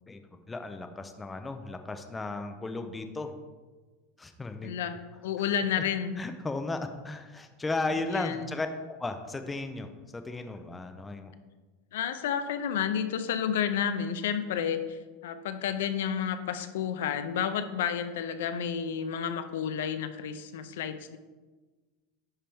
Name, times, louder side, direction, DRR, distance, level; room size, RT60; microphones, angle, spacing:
voice 1, 0.1-3.3 4.2-4.7 6.2-11.3, left 3 dB, 10° left, 7 dB, 0.3 m, -35 dB
voice 2, 4.6-6.1 8.0-8.5 11.9-21.2, left 8 dB, 85° left, 10 dB, 0.6 m, -31 dB
10.0 x 3.4 x 4.4 m, 1.3 s
supercardioid pair, 175°, 0 cm